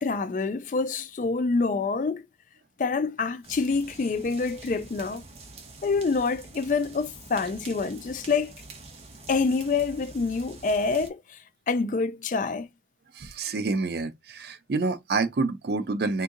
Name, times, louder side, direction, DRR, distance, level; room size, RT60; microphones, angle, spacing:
voice 1, 0.0-2.2 2.8-5.2 5.8-8.5 9.3-11.4 11.7-12.7, left 4 dB, 45° left, 0.3 m, -26 dB
sound 1, 3.4-11.1, right 3 dB, 35° right, 0.8 m, -46 dB
voice 2, 13.1-16.2, right 3 dB, 65° right, 0.5 m, -28 dB
3.6 x 2.8 x 2.5 m
head